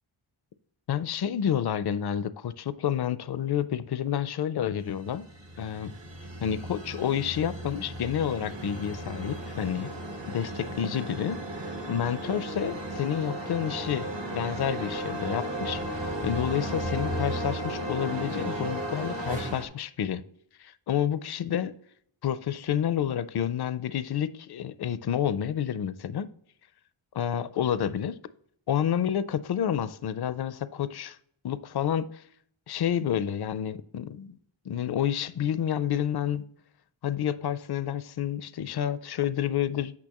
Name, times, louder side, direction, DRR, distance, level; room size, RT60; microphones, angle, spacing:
voice 1, 0.9-5.3 5.6-5.9 6.4-9.9 10.3-20.2 20.6-21.7 22.2-26.3 27.1-28.2 28.7-31.2 31.4-32.2 32.7-34.4 34.7-36.5 37.0-39.9, left 9 dB, 55° left, 0.5 m, -29 dB
sound 1, 4.9-19.6, right 1 dB, 60° right, 1.4 m, -35 dB
8.5 x 5.9 x 2.9 m
wide cardioid pair, 95°, 49 cm